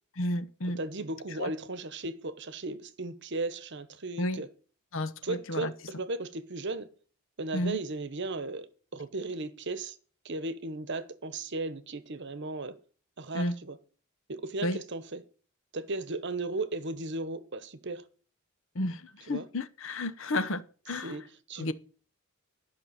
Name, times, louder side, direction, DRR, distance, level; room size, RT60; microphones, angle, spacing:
voice 1, 0.2-0.8 1.4-1.5 4.2-4.4 4.9-5.7 7.5-7.8 13.3-13.5 14.6-14.8 18.7-21.2 21.6-21.7, left 1 dB, 60° left, 0.9 m, -32 dB
voice 2, 0.8-4.5 5.2-6.9 7.4-10.0 10.2-12.8 13.2-13.8 14.3-15.2 15.7-18.0 19.3-19.5 21.0-21.7, right 2 dB, 55° right, 1.0 m, -36 dB
11.5 x 5.8 x 8.1 m
head